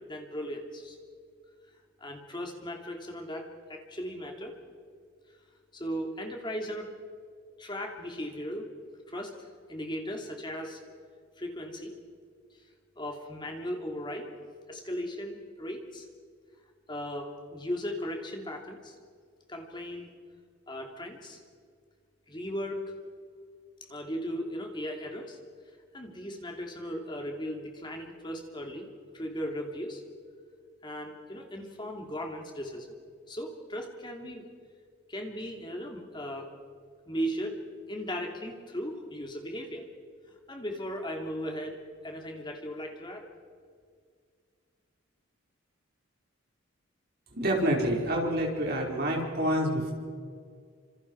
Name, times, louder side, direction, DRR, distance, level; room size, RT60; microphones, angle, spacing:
voice 1, 0.1-1.0 2.0-4.5 5.7-6.9 7.6-8.7 9.1-10.8 11.4-11.9 13.0-14.3 14.7-16.1 16.9-18.9 19.5-20.1 20.7-21.4 22.3-22.8 23.9-25.4 25.9-28.9 29.1-30.0 30.8-32.9 33.3-34.5 35.1-36.5 37.1-37.6 37.9-39.9 40.3-43.3, equal, 20° left, 2 dB, 2.9 m, -37 dB
voice 2, 47.3-49.9, right 1 dB, 45° right, -1 dB, 4.8 m, -27 dB
28.5 x 26.5 x 4.8 m, 2.1 s
head